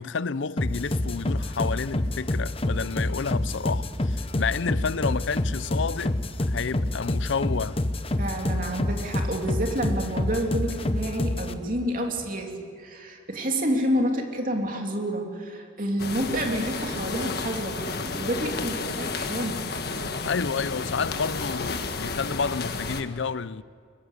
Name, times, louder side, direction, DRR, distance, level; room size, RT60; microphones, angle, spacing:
voice 1, 0.0-6.2 6.5-7.8 20.2-23.6, left 5 dB, 70° left, 0.6 m, -30 dB
sound 1, 0.6-11.6, left 1 dB, 30° left, 1.0 m, -28 dB
voice 2, 8.2-12.5 12.8-19.6, equal, 40° right, 3.1 m, -29 dB
sound 2, 16.0-23.0, left 3 dB, 50° left, 1.5 m, -32 dB
24.0 x 22.0 x 8.5 m
head